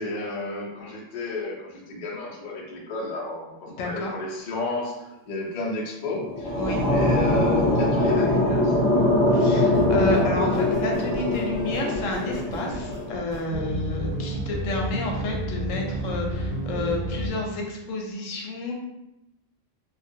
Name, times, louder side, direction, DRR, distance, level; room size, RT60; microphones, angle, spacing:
voice 1, 0.0-9.2, left 2 dB, 55° left, -2 dB, 0.5 m, -32 dB
voice 2, 3.8-4.1 6.6-6.8 9.4-18.7, left 2 dB, 90° left, 0 dB, 1.0 m, -30 dB
sound 1, 6.0-13.2, left 1 dB, 5° right, 0.8 m, -22 dB
sound 2, 9.7-17.3, right 1 dB, 45° right, 0.6 m, -32 dB
2.2 x 2.2 x 2.6 m, 0.91 s
omnidirectional pair, 1.3 m